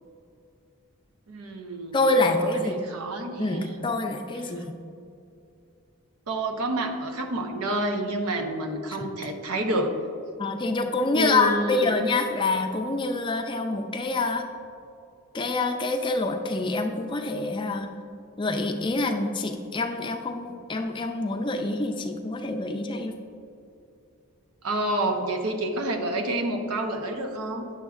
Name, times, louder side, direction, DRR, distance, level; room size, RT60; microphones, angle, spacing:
voice 1, 1.3-3.8 4.4-4.6 6.3-10.0 11.1-11.9 24.6-27.7, right 1 dB, 85° right, 4 dB, 0.8 m, -29 dB
voice 2, 1.9-2.8 3.4-4.7 10.4-14.4 15.3-17.9 18.4-23.1, left 2 dB, 20° left, 4 dB, 0.4 m, -26 dB
9.7 x 7.0 x 2.4 m, 2.5 s
head